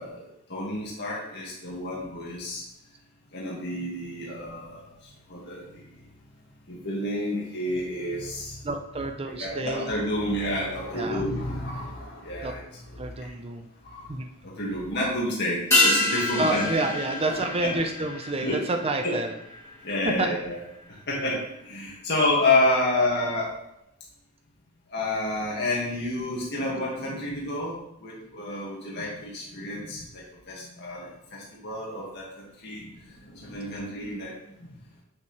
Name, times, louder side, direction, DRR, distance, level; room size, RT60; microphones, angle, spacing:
voice 1, 0.0-2.6 3.3-4.9 5.3-5.8 6.7-8.6 9.3-12.6 13.8-14.1 14.4-16.6 18.4-18.6 19.0-19.2 19.8-20.6 21.1-23.6 24.9-27.7 28.0-30.2 30.5-34.3 34.6-34.7, left 1 dB, 55° left, -5 dB, 2.0 m, -29 dB
voice 2, 8.6-9.9 10.9-11.2 12.4-12.6 13.0-13.7 14.1-14.3 16.4-19.3 20.0-20.3 22.9-23.4 26.1-26.7, right 2 dB, 30° right, 5 dB, 0.6 m, -29 dB
sound 1, 15.7-20.4 20.7-20.8, left 2 dB, 15° left, 2.7 m, -27 dB
8.4 x 6.7 x 3.3 m, 0.80 s
head